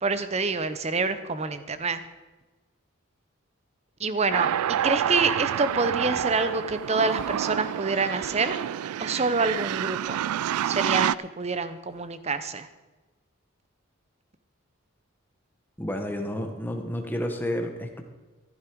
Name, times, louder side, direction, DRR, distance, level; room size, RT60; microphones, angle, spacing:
voice 1, 0.0-2.0 4.0-8.6 9.0-10.2 10.6-12.7, right 4 dB, 30° right, 12 dB, 0.7 m, -27 dB
sound 1, 4.3-11.1, right 10 dB, 90° right, 0.3 m, -28 dB
voice 2, 15.8-18.0, left 1 dB, 10° left, 4 dB, 1.2 m, -30 dB
14.5 x 11.5 x 4.6 m, 1.2 s
head